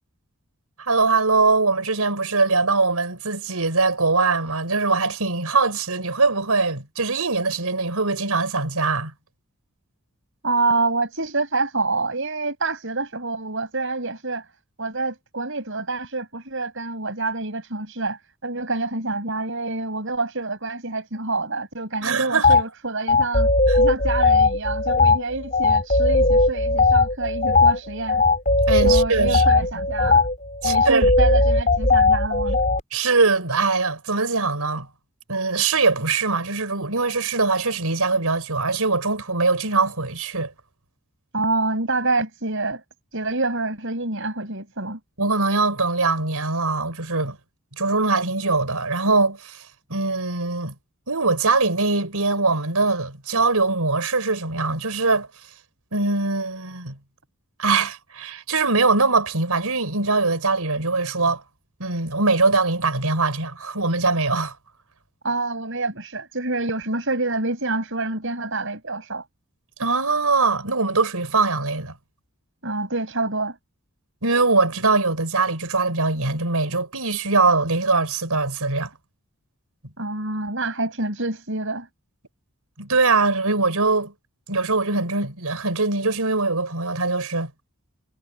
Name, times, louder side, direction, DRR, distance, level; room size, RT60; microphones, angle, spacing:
voice 1, 0.8-9.1 22.0-22.5 23.7-23.8 28.7-29.4 29.7-29.8 30.6-31.1 32.9-34.9 35.3-40.5 45.2-47.4 47.8-50.7 51.1-55.3 55.9-57.0 57.6-61.4 61.8-64.5 69.8-71.9 74.2-78.9 82.8-84.1 84.5-87.5, right 3 dB, 90° right, 4.7 m, -22 dB
voice 2, 10.4-14.4 14.8-23.5 23.8-28.2 28.8-30.2 30.6-32.6 41.3-42.8 43.1-45.0 65.2-69.2 72.6-73.6 80.0-81.9, right 3 dB, 60° right, 8.0 m, -27 dB
sound 1, 22.4-22.6 23.1-32.8, left 3 dB, 35° left, 5.5 m, -18 dB
head